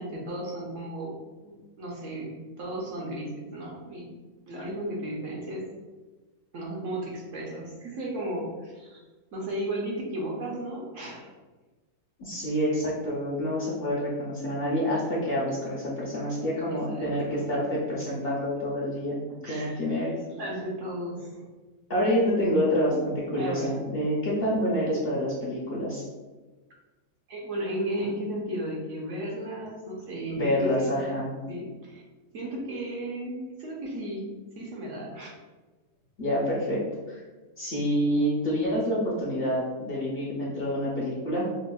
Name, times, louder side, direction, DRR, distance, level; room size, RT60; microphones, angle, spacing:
voice 1, 0.0-4.1 4.5-5.6 6.5-9.0 9.3-11.3 16.7-17.5 19.3-19.8 20.4-21.5 22.9-23.0 23.4-23.9 27.3-30.9 31.5-32.0 32.3-34.2 34.6-35.3, right 1 dB, 65° right, -3 dB, 1.0 m, -34 dB
voice 2, 12.2-20.2 21.9-26.0 30.2-31.3 36.2-37.2 37.6-41.5, equal, 50° left, -5 dB, 0.8 m, -27 dB
5.1 x 2.3 x 2.2 m, 1.2 s
omnidirectional pair, 1.5 m